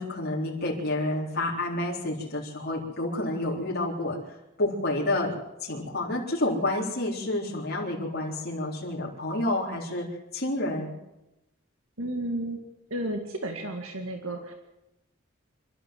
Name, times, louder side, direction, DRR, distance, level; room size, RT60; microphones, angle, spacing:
voice 1, 0.0-4.2 4.6-5.3 5.6-10.1 10.3-10.9, left 1 dB, 50° left, -4 dB, 3.9 m, -29 dB
voice 2, 12.0-12.6 12.9-14.5, right 1 dB, 80° right, 4 dB, 2.0 m, -32 dB
26.5 x 13.0 x 7.8 m, 0.95 s
head